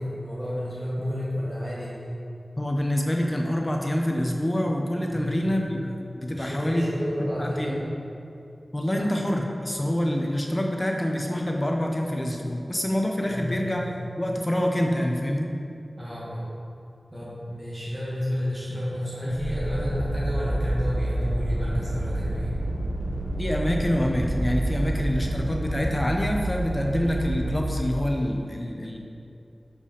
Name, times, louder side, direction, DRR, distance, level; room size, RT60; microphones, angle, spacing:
voice 1, 0.0-1.9 5.1-5.5 6.3-7.9 9.0-9.1 13.3-13.6 16.0-16.4 17.1-22.6, equal, 15° right, -9 dB, 1.5 m, -31 dB
voice 2, 2.6-5.8 6.2-6.9 7.4-7.8 8.7-13.8 14.2-15.5 23.4-29.0, equal, 25° left, 1 dB, 0.8 m, -26 dB
sound 1, 19.3-27.8, right 1 dB, 40° right, 0.6 m, -28 dB
5.1 x 5.1 x 5.0 m, 2.7 s
wide cardioid pair, 60°, 0 cm